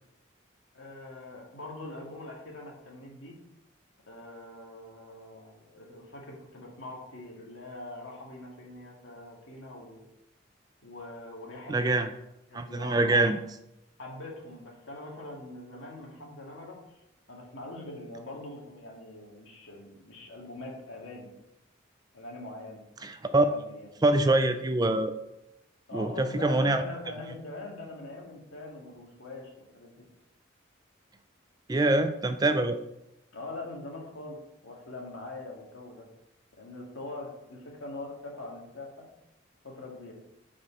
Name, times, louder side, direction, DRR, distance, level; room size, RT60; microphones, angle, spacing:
voice 1, 0.7-3.4 4.1-10.1 10.8-12.1 12.5-13.3 14.0-16.8 17.3-21.3 22.1-22.8 23.3-23.9 25.9-30.0 33.3-36.1 36.6-39.1 39.6-40.1, left 2 dB, 80° left, -1 dB, 1.9 m, -43 dB
voice 2, 11.7-12.1 12.5-13.4 23.0-23.5 24.0-25.1 25.9-26.8 31.7-32.8, right 2 dB, 20° right, 8 dB, 0.3 m, -24 dB
7.0 x 4.9 x 4.4 m, 0.86 s
head